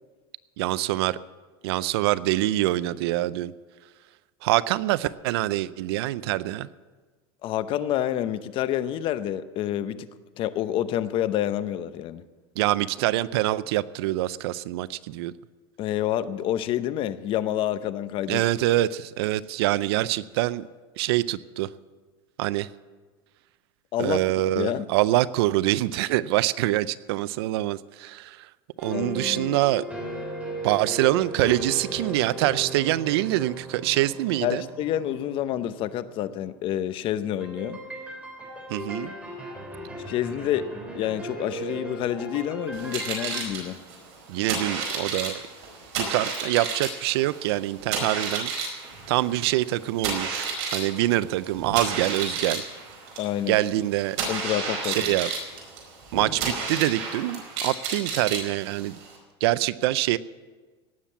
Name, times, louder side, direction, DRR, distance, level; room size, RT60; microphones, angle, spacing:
voice 1, 0.6-1.2 1.6-3.5 4.4-6.7 12.6-15.3 18.3-20.7 21.0-21.7 22.4-22.7 24.0-28.5 28.8-29.8 30.6-34.7 38.7-39.1 44.3-45.4 46.0-48.5 49.1-52.7 53.5-54.2 54.8-55.3 56.1-59.0 59.4-60.2, right 16 dB, 80° right, 18 dB, 0.5 m, -25 dB
voice 2, 7.4-10.1 10.4-12.2 15.8-18.4 23.9-24.2 24.6-24.9 28.9-29.6 34.4-37.8 40.1-40.7 40.9-43.8 53.2-53.6 54.3-55.1, left 11 dB, 40° left, 13 dB, 0.7 m, -28 dB
sound 1, 28.8-36.5 37.4-43.4, right 1 dB, 10° right, 3.4 m, -37 dB
sound 2, 42.7-59.2, right 5 dB, 55° right, 4.8 m, -32 dB
17.5 x 7.5 x 8.4 m, 1.4 s
supercardioid pair, 145°, 13 cm